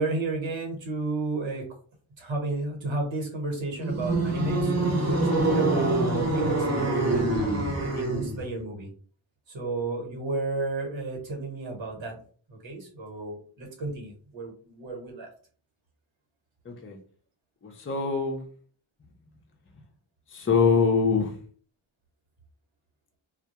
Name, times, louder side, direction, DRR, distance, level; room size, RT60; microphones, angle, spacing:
voice 1, 0.0-1.7 2.2-7.2 7.8-8.9 9.5-12.2 12.5-15.3, right 3 dB, 65° right, 1 dB, 1.1 m, -32 dB
sound 1, 3.8-8.4, right 2 dB, 35° right, 0.7 m, -25 dB
voice 2, 16.7-17.0 17.6-18.4 20.3-21.4, left 5 dB, 25° left, 2 dB, 0.5 m, -24 dB
2.2 x 2.1 x 2.8 m, 0.43 s
wide cardioid pair, 70°, 49 cm